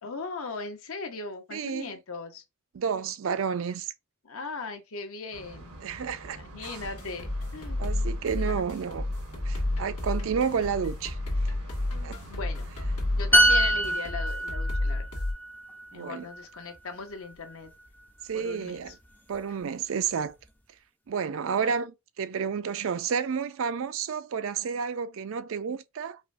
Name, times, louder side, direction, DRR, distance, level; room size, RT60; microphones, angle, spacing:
voice 1, 0.0-2.4 4.2-5.8 6.3-7.9 8.3-8.6 12.3-12.7 13.1-15.0 15.9-17.7 18.3-18.9 21.6-21.7, left 4 dB, 70° left, 0.7 m, -38 dB
voice 2, 1.5-1.9 2.7-3.9 5.8-6.4 7.8-9.1 9.4-11.2 12.0-12.2 15.9-16.3 18.2-19.0 19.3-20.4 21.1-26.2, right 6 dB, 60° right, 0.4 m, -30 dB
sound 1, 5.3-14.0, right 1 dB, 80° right, 0.9 m, -45 dB
sound 2, 6.8-15.3, left 1 dB, 90° left, 1.4 m, -31 dB
sound 3, 13.3-16.9 17.2-17.5, right 1 dB, 10° left, 0.4 m, -25 dB
4.9 x 2.1 x 2.5 m
head